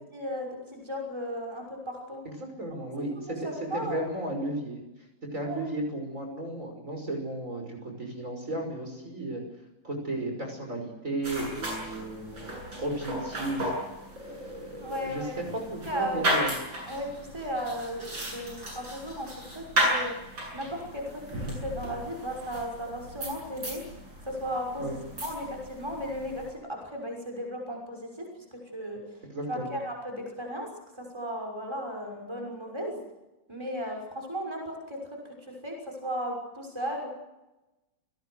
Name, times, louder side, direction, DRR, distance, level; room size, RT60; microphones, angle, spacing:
voice 1, 0.1-2.2 3.2-4.0 5.4-5.6 14.8-15.5 15.9-16.3 16.9-20.1 20.5-23.8 24.3-29.0 29.5-30.7 31.0-33.0 33.5-37.1, equal, 15° right, 1 dB, 6.0 m, -35 dB
voice 2, 2.2-4.8 5.3-9.4 9.8-13.7 14.2-16.5 24.8-25.0 29.3-29.8, right 1 dB, 40° right, 2 dB, 6.2 m, -34 dB
sound 1, 11.2-26.5, right 1 dB, 85° right, 8.9 m, -35 dB
29.0 x 18.0 x 8.0 m, 1.0 s
omnidirectional pair, 2.1 m